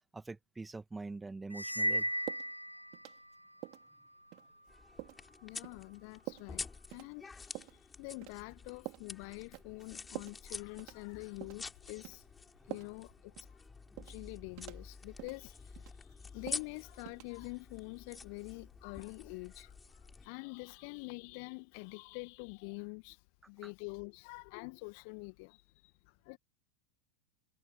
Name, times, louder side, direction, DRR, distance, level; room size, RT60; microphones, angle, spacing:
voice 1, 0.1-2.1 23.6-23.7, right 3 dB, 10° right, 2.1 m, -44 dB
sound 1, 1.5-3.4, equal, 90° right, 2.4 m, -35 dB
sound 2, 2.3-2.5 2.9-3.3 3.6-3.9 4.3-4.5 5.0-5.2 5.6-5.8 6.3-6.5 6.9-7.1 7.5-7.8 8.2-8.5 8.8-9.1 9.5-9.9 10.1-10.4 10.8-11.1 11.4-11.6 12.0-12.2 12.7-13.1 13.4-13.5 14.0-14.2 14.6-14.8 15.2-15.4 15.7-16.1 16.5-16.7 17.0-17.2, right 26 dB, 40° right, 4.7 m, -46 dB
sound 3, 4.7-20.3, left 4 dB, 15° left, 6.6 m, -48 dB
voice 2, 5.4-12.2 12.7-13.6 14.0-23.2 23.5-26.4, left 36 dB, 45° left, 1.9 m, -46 dB
figure-of-eight pair, 90°, 0 cm